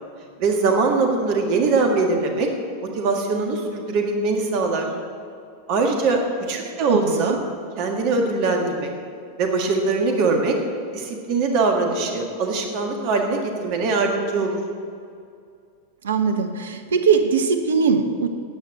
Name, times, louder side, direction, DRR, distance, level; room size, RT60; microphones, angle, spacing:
voice 1, 0.4-2.5 2.8-4.9 5.7-6.2 6.5-7.3 7.8-8.9 9.4-10.6 10.9-14.6, right 3 dB, 45° right, 2 dB, 1.7 m, -22 dB
voice 2, 6.9-7.4 16.0-18.3, right 5 dB, 65° right, 8 dB, 1.0 m, -21 dB
10.0 x 8.4 x 8.0 m, 2.3 s
figure-of-eight pair, 90°, 0 cm